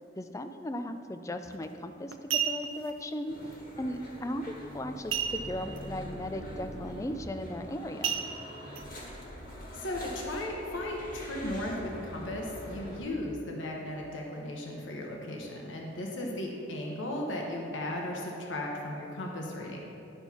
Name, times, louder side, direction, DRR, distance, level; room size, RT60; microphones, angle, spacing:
voice 1, 0.1-3.4 3.8-8.1 16.2-16.4, left 1 dB, 15° left, 8 dB, 0.3 m, -37 dB
sound 1, 1.4-1.7 2.1-2.9 5.1-5.8 6.1-6.2 6.7-6.9 8.0-8.8 9.4-9.5, right 8 dB, 90° right, 0.6 m, -32 dB
sound 2, 3.3-13.0, equal, 45° left, 1.6 m, -44 dB
voice 2, 9.7-19.8, left 1 dB, 75° left, -1 dB, 1.1 m, -36 dB
11.0 x 4.4 x 5.7 m, 2.9 s
head